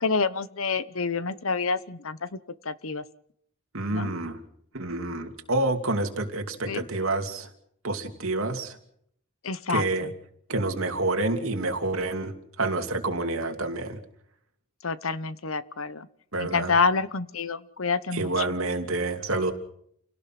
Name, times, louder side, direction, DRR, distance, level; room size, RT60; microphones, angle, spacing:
voice 1, 0.0-2.4 2.6-3.0 3.9-4.1 6.7-6.8 9.4-9.8 14.8-16.1 16.4-18.4, left 4 dB, 75° left, 15 dB, 1.0 m, -27 dB
voice 2, 3.7-4.4 4.7-7.5 7.8-8.8 9.7-10.1 10.5-14.0 16.3-16.7 18.1-19.5, right 2 dB, 75° right, 4 dB, 2.8 m, -28 dB
29.0 x 17.5 x 6.0 m, 0.69 s
head